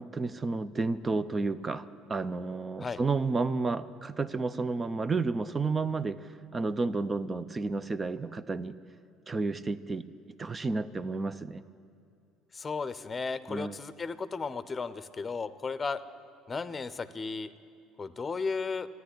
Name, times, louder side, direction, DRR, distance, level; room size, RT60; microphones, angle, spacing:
voice 1, 0.0-8.7 9.3-10.0 10.4-11.6 13.5-13.8, right 3 dB, 25° right, 15 dB, 0.6 m, -31 dB
voice 2, 12.5-16.0 16.5-17.5 18.0-18.9, left 4 dB, 25° left, 14 dB, 0.7 m, -34 dB
13.5 x 9.5 x 10.0 m, 2.7 s
hypercardioid pair, 60°, 0 cm